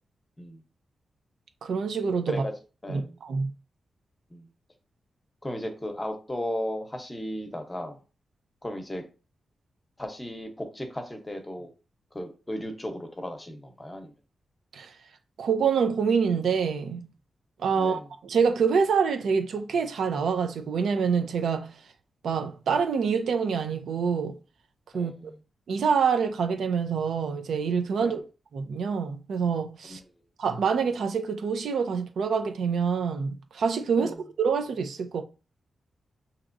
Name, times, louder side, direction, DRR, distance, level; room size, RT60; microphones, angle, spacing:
voice 1, 1.6-2.4 2.9-3.5 14.7-14.9 15.4-17.1 17.6-21.7 22.2-24.3 24.9-25.1 25.7-28.2 28.5-30.0 30.4-35.2, right 6 dB, 85° right, 0.6 m, -26 dB
voice 2, 2.8-3.2 4.3-4.5 5.4-8.0 8.6-9.0 10.0-11.7 12.1-14.1 17.8-18.1 24.9-25.4 28.0-28.1 29.8-30.0 34.0-34.2, left 1 dB, 15° left, 0.8 m, -35 dB
7.0 x 2.9 x 2.5 m
wide cardioid pair, 150°, 0 cm